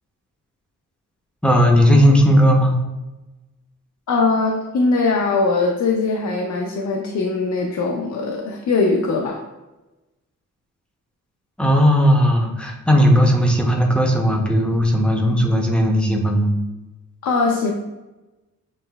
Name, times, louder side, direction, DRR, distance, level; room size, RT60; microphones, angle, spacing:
voice 1, 1.4-2.8 11.6-16.5, equal, 5° left, 1 dB, 0.6 m, -16 dB
voice 2, 4.1-9.4 17.2-17.7, left 3 dB, 65° left, 1 dB, 0.6 m, -21 dB
7.4 x 3.0 x 2.3 m, 1.1 s
wide cardioid pair, 160°, 31 cm